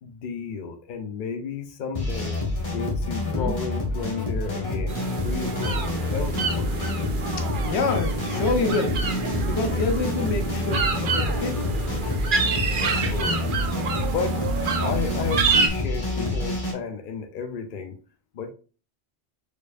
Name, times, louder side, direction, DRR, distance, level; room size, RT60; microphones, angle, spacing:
voice 1, 0.0-2.4 2.7-6.8 12.8-13.5 14.0-14.5 14.8-18.0 18.3-18.5, left 5 dB, 55° left, 0.8 m, -33 dB
sound 1, 2.0-16.7, left 2 dB, 30° left, 1.4 m, -28 dB
sound 2, 4.9-15.7, right 5 dB, 55° right, 0.8 m, -28 dB
voice 2, 7.6-9.1 9.4-11.6, left 3 dB, 90° left, 1.1 m, -27 dB
4.6 x 4.6 x 2.5 m
omnidirectional pair, 1.1 m